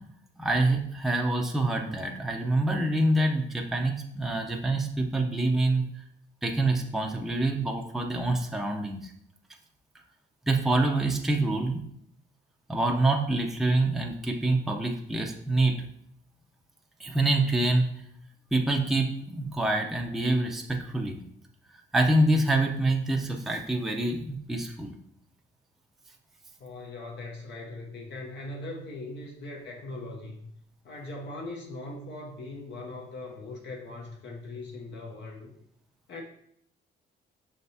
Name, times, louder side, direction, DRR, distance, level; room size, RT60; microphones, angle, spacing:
voice 1, 0.4-5.9 6.4-9.1 10.5-11.8 12.7-15.8 17.0-17.9 18.5-21.2 21.9-24.9, right 2 dB, ahead, 2 dB, 0.5 m, -26 dB
voice 2, 26.6-30.5 30.8-35.5 36.1-36.2, left 2 dB, 65° left, -1 dB, 0.8 m, -40 dB
5.5 x 3.4 x 2.7 m, 0.70 s
cardioid pair, 90°, 20 cm